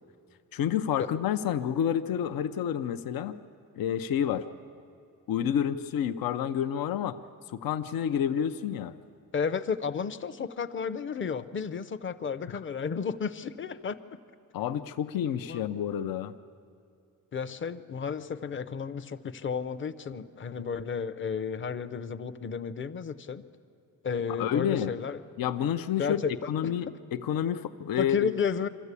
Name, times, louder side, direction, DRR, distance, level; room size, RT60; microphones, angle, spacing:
voice 1, 0.5-3.3 3.8-4.4 5.3-7.2 7.5-8.9 14.5-16.3 24.4-24.9 25.4-26.2 26.5-28.3, left 9 dB, 80° left, 10 dB, 0.7 m, -29 dB
voice 2, 9.3-14.0 15.4-15.6 17.3-23.5 24.0-25.2 26.0-26.3 26.6-26.7 28.0-28.7, left 6 dB, 35° left, 13 dB, 0.7 m, -32 dB
25.0 x 13.5 x 8.3 m, 2.5 s
cardioid pair, 120°, 35 cm